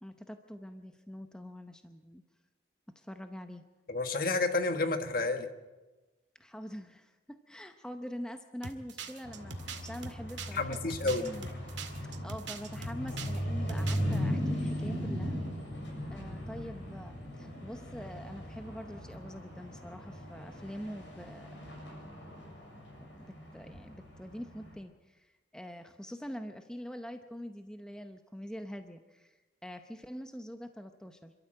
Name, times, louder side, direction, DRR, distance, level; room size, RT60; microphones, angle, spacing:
voice 1, 0.0-2.2 2.9-3.6 6.4-11.5 12.0-15.4 16.1-21.5 23.0-31.3, equal, 5° left, 6 dB, 0.8 m, -44 dB
voice 2, 3.9-5.5 10.5-11.2, left 3 dB, 50° left, 7 dB, 1.5 m, -30 dB
sound 1, 8.6-13.4 13.7-14.2, right 5 dB, 75° right, 2.0 m, -42 dB
sound 2, 9.2-24.8, equal, 80° left, 7.5 m, -38 dB
27.5 x 13.0 x 7.7 m, 1.2 s
head